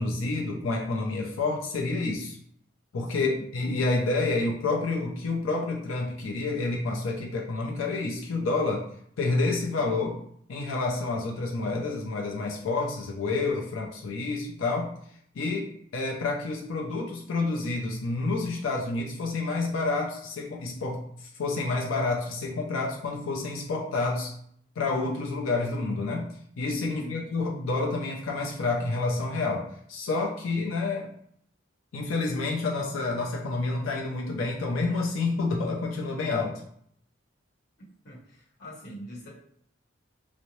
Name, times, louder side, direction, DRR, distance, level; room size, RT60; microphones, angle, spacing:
voice 1, 0.0-2.4 2.9-8.8 9.2-10.2 10.5-14.9 15.4-21.1 21.4-24.3 24.8-26.3 26.6-31.1 31.9-36.6, left 3 dB, 80° left, -1 dB, 0.5 m, -29 dB
voice 2, 26.9-27.3 38.0-39.3, equal, 55° left, -6 dB, 1.1 m, -43 dB
2.6 x 2.0 x 3.0 m, 0.67 s
head